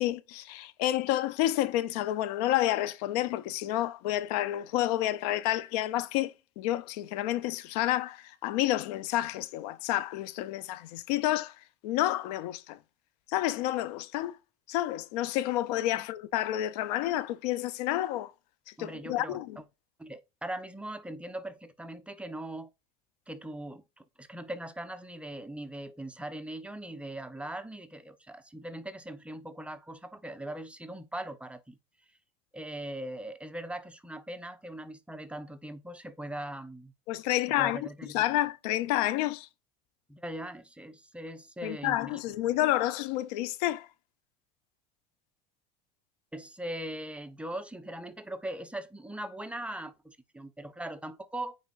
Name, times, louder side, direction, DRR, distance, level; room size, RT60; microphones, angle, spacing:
voice 1, 0.0-11.5 11.8-12.8 13.3-14.4 14.7-18.3 18.8-19.6 37.1-39.5 41.6-43.9, left 14 dB, 85° left, 0.6 m, -29 dB
voice 2, 18.8-19.6 20.0-22.7 23.3-31.8 32.5-36.9 37.6-38.2 40.1-42.2 46.3-51.6, right 1 dB, 5° right, 0.8 m, -40 dB
9.1 x 4.2 x 2.5 m
supercardioid pair, 105°, 20 cm